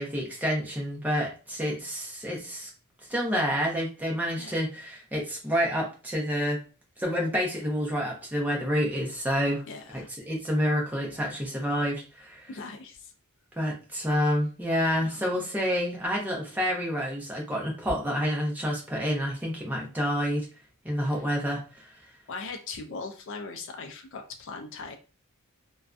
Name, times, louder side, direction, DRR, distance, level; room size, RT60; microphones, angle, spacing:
voice 1, 0.0-2.7 3.1-6.6 7.0-9.6 9.9-12.5 13.6-20.5 20.8-21.9, equal, 10° right, -2 dB, 0.6 m, -28 dB
voice 2, 9.7-10.1 12.5-13.1 15.0-15.4 21.0-21.3 22.3-25.0, left 4 dB, 60° left, 5 dB, 0.4 m, -40 dB
2.5 x 2.2 x 2.3 m, 0.34 s
head